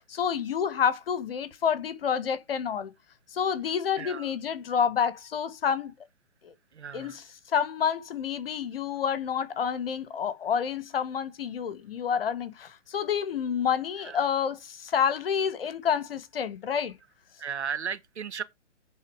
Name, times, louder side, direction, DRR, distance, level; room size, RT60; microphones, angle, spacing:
voice 1, 0.0-2.9 3.3-5.9 6.4-6.5 6.9-16.9, left 7 dB, 50° left, 1.4 m, -29 dB
voice 2, 6.8-7.1 14.1-14.2 17.4-18.4, right 7 dB, 60° right, 1.4 m, -35 dB
10.5 x 4.0 x 4.8 m
figure-of-eight pair, 135°, 37 cm